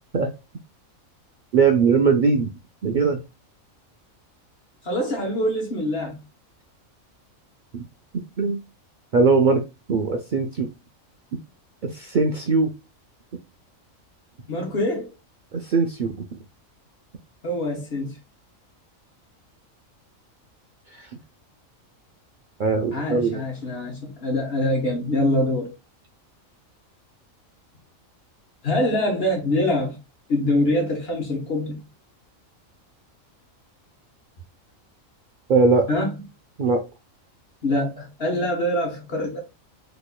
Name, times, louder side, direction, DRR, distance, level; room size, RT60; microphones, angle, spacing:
voice 1, 1.5-2.5 2.8-3.2 8.4-8.6 9.1-9.6 9.9-10.7 11.8-12.7 15.5-16.3 20.9-21.1 22.6-23.4 35.5-35.9 36.6-36.8, right 4 dB, 75° right, 0.4 m, -20 dB
voice 2, 4.8-6.2 14.5-15.1 17.4-18.2 22.9-25.7 28.6-30.0 30.3-31.8 35.9-36.1 37.6-39.4, left 1 dB, 50° left, 1.2 m, -24 dB
4.1 x 3.0 x 2.2 m
omnidirectional pair, 1.4 m